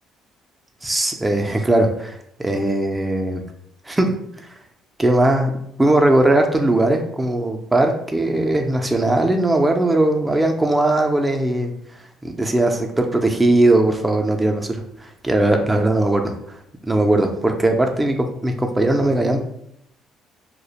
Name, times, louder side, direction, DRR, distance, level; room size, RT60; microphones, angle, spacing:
voice 1, 0.8-2.2 2.4-3.4 3.9-4.1 5.0-5.5 5.8-11.7 12.2-16.6 16.8-19.4, right 1 dB, 15° right, 3 dB, 0.3 m, -19 dB
2.3 x 2.0 x 2.8 m, 0.75 s
supercardioid pair, 75°, 0 cm